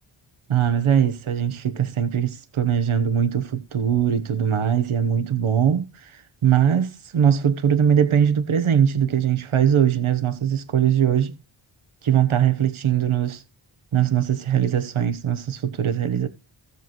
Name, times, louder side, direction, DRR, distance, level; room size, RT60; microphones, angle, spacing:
voice 1, 0.5-11.3 12.0-13.4 13.9-16.3, right 9 dB, 85° right, 1.2 m, -21 dB
16.0 x 7.0 x 3.1 m
cardioid pair, 60°, 48 cm